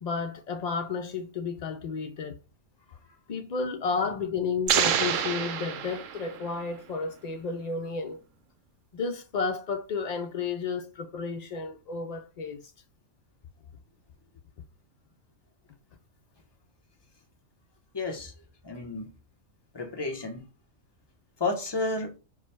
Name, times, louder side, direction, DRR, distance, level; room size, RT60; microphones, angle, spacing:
voice 1, 0.0-2.4 3.3-8.2 8.9-12.7, left 4 dB, 80° left, 0.3 m, -32 dB
sound 1, 4.7-6.6, right 8 dB, 80° right, 1.0 m, -27 dB
voice 2, 17.9-18.3 18.6-19.1 19.7-20.4 21.4-22.1, left 3 dB, 25° left, 0.7 m, -31 dB
4.7 x 2.2 x 4.3 m
omnidirectional pair, 1.3 m